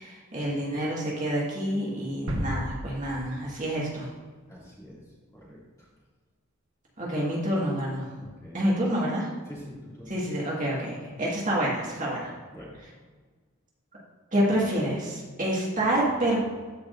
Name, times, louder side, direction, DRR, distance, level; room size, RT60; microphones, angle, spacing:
voice 1, 0.0-4.1 7.0-8.1 8.5-9.3 10.1-12.3 14.3-16.4, right 1 dB, 40° right, -5 dB, 1.7 m, -28 dB
sound 1, 2.3-4.2 4.6-4.7, equal, 70° right, 1.1 m, -34 dB
voice 2, 4.5-5.0 5.3-5.9 8.2-8.7 9.5-10.1 12.5-12.7, equal, 15° left, -7 dB, 2.3 m, -46 dB
14.0 x 4.8 x 2.5 m, 1.4 s
head